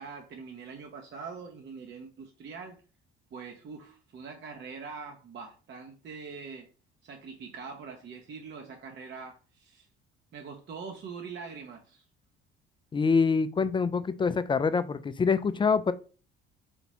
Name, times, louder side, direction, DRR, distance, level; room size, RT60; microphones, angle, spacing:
voice 1, 0.0-2.8 3.3-6.7 7.0-9.9 10.3-12.0, right 5 dB, 35° right, 0.7 m, -43 dB
voice 2, 12.9-15.9, left 5 dB, 15° left, 0.3 m, -25 dB
3.9 x 3.5 x 2.9 m
hypercardioid pair, 55°, 31 cm